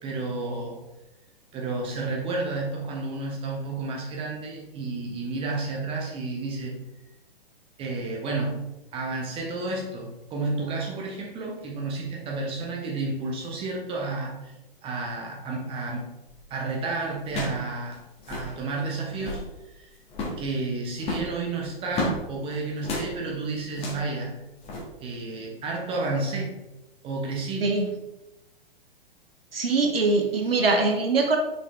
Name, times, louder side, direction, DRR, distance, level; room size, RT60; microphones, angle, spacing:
voice 1, 0.0-0.8 1.5-6.7 7.8-8.6 8.9-14.5 14.8-16.1 16.5-18.0 18.3-19.9 20.4-24.3 25.0-26.6 27.0-27.7, right 3 dB, 20° right, -1 dB, 1.4 m, -31 dB
sound 1, 16.3-16.5 17.2-17.7 17.9-18.0 18.2-18.5 19.0-19.5 20.1-20.5 21.0-22.2 22.8-23.1 23.7-24.1 24.6-24.8, left 1 dB, 20° left, 1.6 m, -32 dB
voice 2, 29.5-31.4, right 3 dB, 70° right, 4 dB, 1.0 m, -22 dB
6.6 x 5.1 x 3.4 m, 0.97 s
figure-of-eight pair, 115°, 30 cm